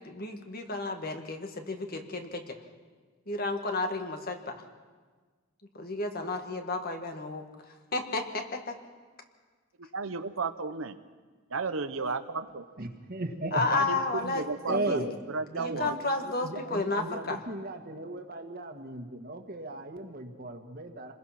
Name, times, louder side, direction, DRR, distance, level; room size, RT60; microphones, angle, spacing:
voice 1, 0.0-2.6 3.3-4.6 5.7-7.4 7.9-8.8 11.7-12.2 13.5-15.1 15.6-17.4, left 3 dB, 45° left, 5 dB, 1.9 m, -32 dB
voice 2, 9.9-11.0 11.5-12.6 13.7-15.9, right 4 dB, 75° right, 9 dB, 1.0 m, -33 dB
voice 3, 12.8-13.6 14.7-15.1 15.5-15.9 16.2-21.1, right 2 dB, 45° right, 5 dB, 1.8 m, -36 dB
27.5 x 20.5 x 6.0 m, 1.4 s
head